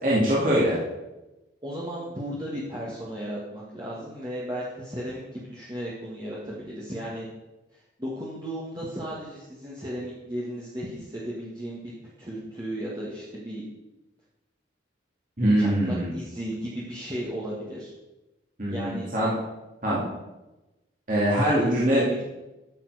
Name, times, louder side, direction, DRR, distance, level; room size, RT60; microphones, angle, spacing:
voice 1, 0.0-0.8 15.4-16.1 18.6-19.3 19.8-20.1 21.1-22.2, right 1 dB, 45° right, -7 dB, 2.6 m, -23 dB
voice 2, 1.6-7.3 8.0-11.9 12.2-13.6 15.6-17.9 18.7-19.1 21.5-22.2, equal, 20° right, -6 dB, 1.7 m, -35 dB
13.0 x 7.3 x 4.9 m, 1.0 s
head